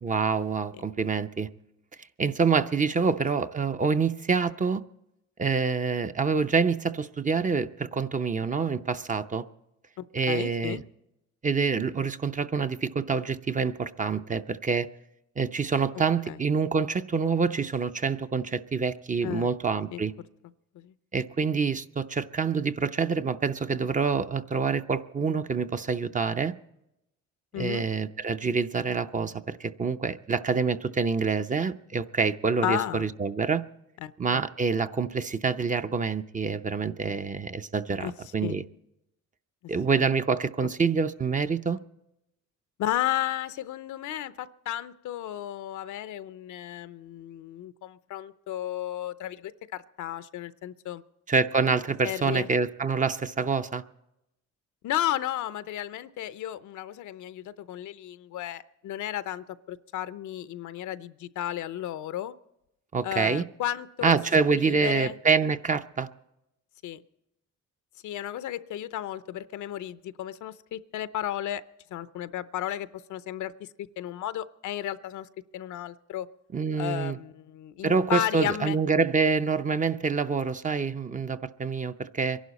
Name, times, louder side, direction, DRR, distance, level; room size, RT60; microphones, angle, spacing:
voice 1, 0.0-1.5 2.2-4.8 5.4-9.4 10.1-10.8 11.4-14.9 15.4-20.1 21.1-26.5 27.6-33.7 34.2-38.6 39.7-41.8 51.3-53.8 62.9-63.4 64.0-66.1 76.5-77.2 77.8-82.4, right 5 dB, 25° right, 10 dB, 0.6 m, -26 dB
voice 2, 10.0-10.8 16.3-16.4 19.2-19.5 19.9-20.0 20.7-20.9 27.5-27.8 32.6-33.1 34.0-34.4 38.0-38.1 38.4-38.6 42.8-51.0 52.0-52.5 54.8-62.3 63.0-64.2 64.5-65.2 66.8-67.0 68.0-71.6 71.9-76.3 76.8-78.8, left 12 dB, 75° left, 14 dB, 0.6 m, -33 dB
24.5 x 11.5 x 4.1 m, 0.87 s
cardioid pair, 90°, 30 cm